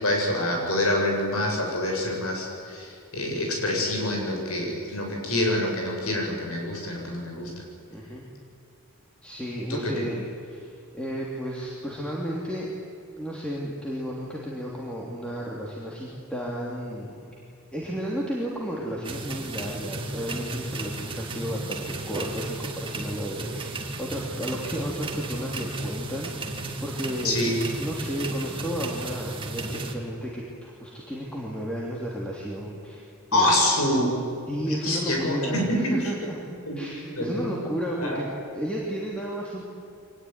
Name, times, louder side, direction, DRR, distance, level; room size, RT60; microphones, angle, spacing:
voice 1, 0.0-7.5 9.7-9.9 27.2-27.6 33.3-34.2 34.7-36.0 36.7-36.8 37.1-37.5 38.0-38.2, left 1 dB, 75° left, 0 dB, 7.6 m, -26 dB
voice 2, 7.9-8.2 9.2-10.7 10.9-12.7 13.2-17.3 17.7-33.0 33.3-33.7 34.5-36.4 36.8-38.3 38.5-39.6, equal, 5° left, -4 dB, 3.1 m, -33 dB
sound 1, 19.0-29.9, right 2 dB, 25° right, 2.5 m, -34 dB
24.5 x 20.0 x 9.7 m, 2.6 s
head